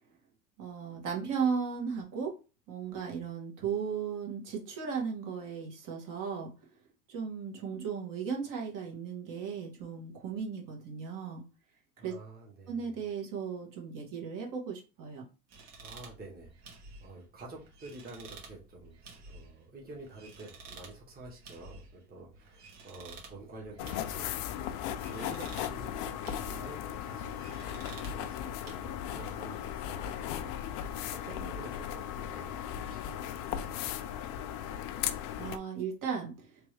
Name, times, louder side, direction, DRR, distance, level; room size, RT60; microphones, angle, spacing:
voice 1, 0.6-2.3 2.7-6.5 7.1-11.4 12.0-12.1 12.7-15.2 35.4-36.3, right 6 dB, 45° right, 0 dB, 1.5 m, -36 dB
voice 2, 12.0-12.9 15.8-16.7 17.0-24.3 24.9-33.9, right 2 dB, 20° right, -3 dB, 1.3 m, -49 dB
sound 1, 15.5-28.7, right 3 dB, 60° right, 1.8 m, -52 dB
sound 2, 23.8-35.6, left 10 dB, 50° left, 0.5 m, -37 dB
3.3 x 3.2 x 3.2 m, 0.32 s
supercardioid pair, 125°, 45 cm